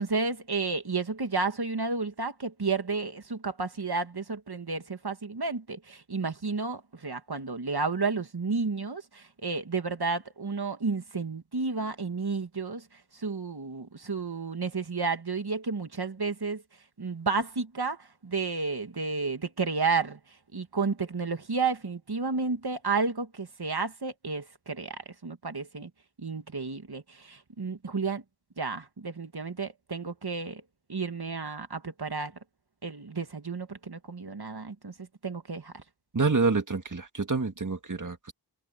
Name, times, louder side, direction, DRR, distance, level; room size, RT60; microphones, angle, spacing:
voice 1, 0.0-12.8 13.1-16.6 17.0-20.2 20.5-25.9 26.2-28.2 28.6-30.6 30.9-32.3 32.8-34.9 35.2-35.8, right 4 dB, 75° right, 1.8 m, -31 dB
voice 2, 36.1-38.3, right 4 dB, 50° right, 2.0 m, -27 dB
wide cardioid pair, 50°, 39 cm